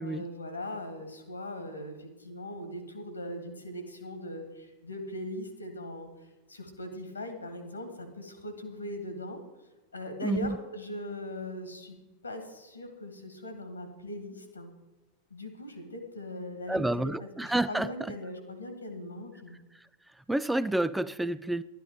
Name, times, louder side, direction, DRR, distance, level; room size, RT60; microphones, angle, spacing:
voice 1, 0.0-6.1 6.5-9.4 9.9-12.0 12.2-14.7 15.3-17.1 17.4-19.6, left 1 dB, 80° left, 7 dB, 2.2 m, -40 dB
voice 2, 10.2-10.6 16.7-18.1 19.7-19.8 20.3-21.6, right 1 dB, 5° right, 15 dB, 0.3 m, -29 dB
12.5 x 10.5 x 4.9 m, 1.1 s
figure-of-eight pair, 90°, 0 cm